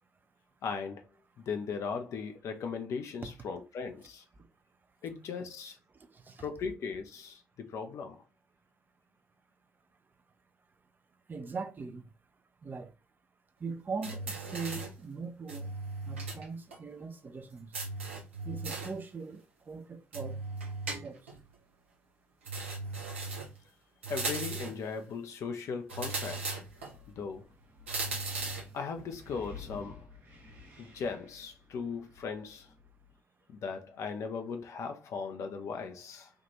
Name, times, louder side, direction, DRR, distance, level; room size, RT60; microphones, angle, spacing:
voice 1, 0.6-1.1 1.4-4.2 5.0-5.8 6.4-8.2 24.1-26.6 27.2-27.5 28.7-30.1 30.8-32.7 33.5-36.3, left 5 dB, 50° left, 0.6 m, -38 dB
voice 2, 6.1-6.4 11.3-12.0 12.6-12.9 13.6-15.7 16.0-17.7 18.4-20.4 20.9-21.2, right 4 dB, 30° right, 0.5 m, -40 dB
sound 1, 14.0-15.0 15.5-16.5 16.7-16.8 17.7-19.0 20.1-21.4 22.5-23.6 24.0-24.8 25.9-26.9 27.9-28.7, right 3 dB, 85° right, 0.6 m, -37 dB
Wind, 26.5-33.2, left 4 dB, 65° right, 1.2 m, -53 dB
3.6 x 2.4 x 2.8 m
figure-of-eight pair, 45°, 6 cm